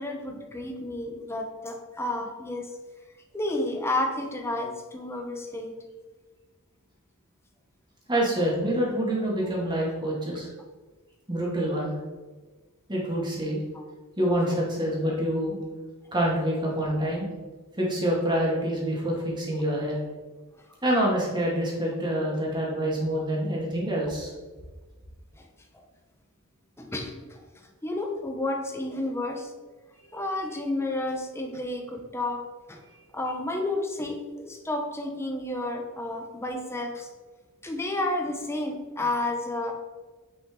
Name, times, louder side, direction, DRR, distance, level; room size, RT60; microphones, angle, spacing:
voice 1, 0.0-2.7 3.3-5.7 13.7-13.8 25.4-25.5 25.7-25.9 26.8-27.4 27.8-29.5 30.1-32.4 32.7-32.8 33.1-37.1 37.6-39.7, left 2 dB, 10° left, 3 dB, 1.0 m, -31 dB
voice 2, 8.1-10.5 11.3-11.9 12.9-13.6 14.2-15.6 16.1-17.3 17.8-19.9 20.8-24.3, right 1 dB, 20° right, -3 dB, 2.3 m, -26 dB
8.9 x 6.0 x 3.9 m, 1.3 s
head